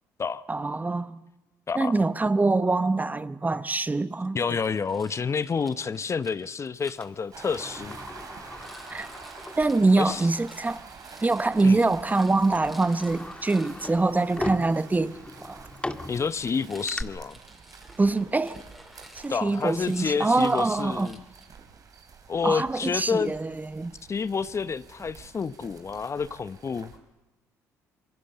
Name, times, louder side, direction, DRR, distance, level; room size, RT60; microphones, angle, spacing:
voice 1, 0.5-1.2 1.7-4.5 8.9-9.1 9.6-10.8 11.2-15.1 15.4-15.6 18.0-18.6 19.1-21.1 22.4-23.9, right 3 dB, 20° right, 1.0 m, -24 dB
voice 2, 4.3-8.0 10.0-10.2 11.6-11.8 16.1-17.4 19.3-21.2 22.3-23.3 24.1-26.9, left 5 dB, 35° left, 0.9 m, -29 dB
Rattle, 4.5-7.1 8.4-13.9 16.6-21.5, equal, ahead, 5.0 m, -52 dB
Sliding door, 7.0-10.2 10.6-10.7 11.6-11.8 12.3-17.0, left 2 dB, 15° left, 1.8 m, -39 dB
sound 1, 7.3-27.0, right 5 dB, 50° right, 3.8 m, -48 dB
26.0 x 23.0 x 6.8 m
hypercardioid pair, 50°, 8 cm